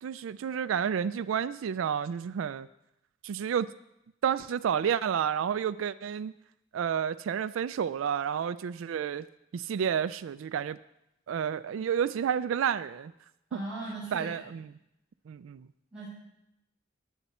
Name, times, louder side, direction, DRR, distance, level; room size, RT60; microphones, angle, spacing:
voice 1, 0.0-2.7 3.2-3.7 4.2-6.3 6.7-9.3 9.5-10.8 11.3-13.1 13.5-13.6 14.1-14.7 15.3-15.7, right 8 dB, 85° right, 12 dB, 0.3 m, -30 dB
voice 2, 13.5-14.4 15.9-16.1, right 2 dB, 5° right, -13 dB, 5.6 m, -38 dB
19.5 x 8.1 x 4.3 m, 0.85 s
head